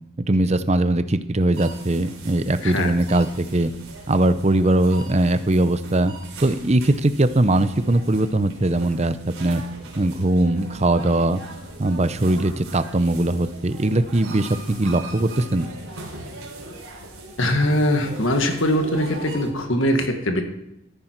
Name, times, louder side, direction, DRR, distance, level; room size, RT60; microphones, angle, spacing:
voice 1, 0.3-3.7 4.1-6.1 6.4-9.6 10.0-11.4 11.8-15.7, right 1 dB, 30° right, 11 dB, 0.6 m, -20 dB
sound 1, 1.5-19.5, right 2 dB, 85° right, 3.6 m, -40 dB
voice 2, 2.6-2.9 17.4-20.4, equal, 65° left, 4 dB, 1.8 m, -21 dB
14.0 x 10.5 x 4.5 m, 0.85 s
head